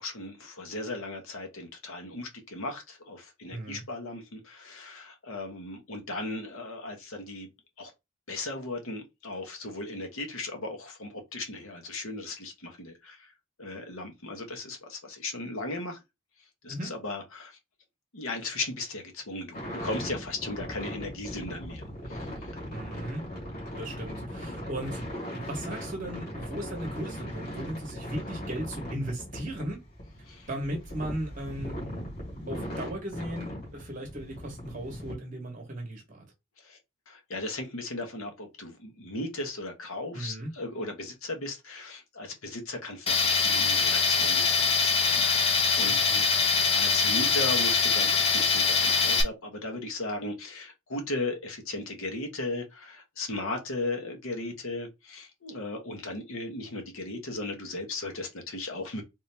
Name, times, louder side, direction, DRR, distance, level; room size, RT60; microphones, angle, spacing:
voice 1, 0.0-7.5 7.8-7.9 8.3-13.3 13.6-16.0 16.6-17.6 18.1-19.5 19.8-22.3 23.7-23.8 30.3-30.5 36.6-36.8 37.1-46.0 46.7-59.0, left 2 dB, 75° left, 1.2 m, -36 dB
voice 2, 3.5-3.8 16.7-16.9 22.7-23.3 23.8-25.0 25.3-29.8 30.5-31.8 32.5-36.3 40.1-40.5 45.9-46.5, right 1 dB, 40° right, 1.1 m, -37 dB
sound 1, 19.5-35.1, equal, 45° left, 2.1 m, -39 dB
Tools, 43.1-49.2, left 5 dB, 30° left, 0.8 m, -23 dB
3.6 x 2.7 x 3.3 m
head